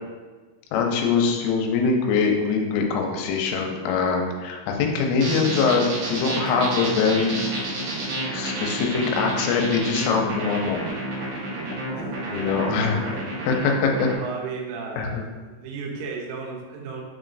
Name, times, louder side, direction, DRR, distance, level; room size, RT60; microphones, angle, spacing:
voice 1, 0.7-7.5 8.3-10.8 12.3-13.1 13.5-14.1 15.0-15.2, left 5 dB, 85° left, 2 dB, 3.1 m, -23 dB
sound 1, 5.2-14.2, right 2 dB, 70° right, 1.8 m, -30 dB
voice 2, 11.9-13.2 14.2-17.0, right 4 dB, 85° right, -1 dB, 3.2 m, -35 dB
7.0 x 3.0 x 2.5 m, 1.4 s
omnidirectional pair, 5.5 m